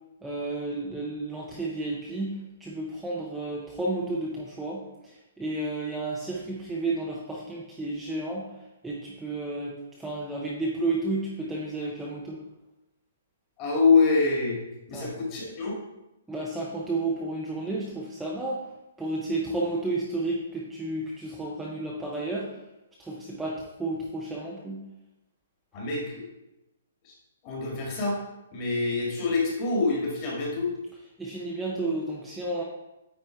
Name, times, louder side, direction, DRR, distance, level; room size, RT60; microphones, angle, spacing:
voice 1, 0.2-4.8 5.4-8.5 8.8-12.4 14.9-15.1 16.3-18.6 19.0-22.5 23.0-24.8 31.2-32.6, right 2 dB, 5° right, -5 dB, 0.7 m, -32 dB
voice 2, 13.6-14.6 14.9-15.7 25.7-26.2 27.1-27.2 27.4-28.2 28.5-30.7, left 4 dB, 25° left, -2 dB, 1.9 m, -25 dB
9.2 x 4.0 x 4.5 m, 0.94 s
hypercardioid pair, 175°, 0 cm